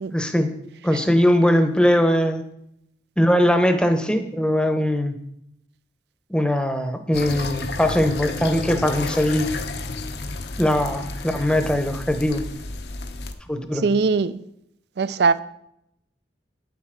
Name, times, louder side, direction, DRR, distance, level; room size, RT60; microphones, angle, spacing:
voice 1, 0.1-0.5 0.8-2.4 3.2-5.2 6.3-9.5 10.6-12.4 13.5-13.9, equal, 5° left, 0.8 m, -20 dB
sound 1, 7.1-13.3, left 3 dB, 65° left, 0.8 m, -31 dB
voice 2, 13.8-14.4 15.0-15.4, right 4 dB, 65° right, 0.4 m, -20 dB
9.3 x 7.6 x 5.1 m
head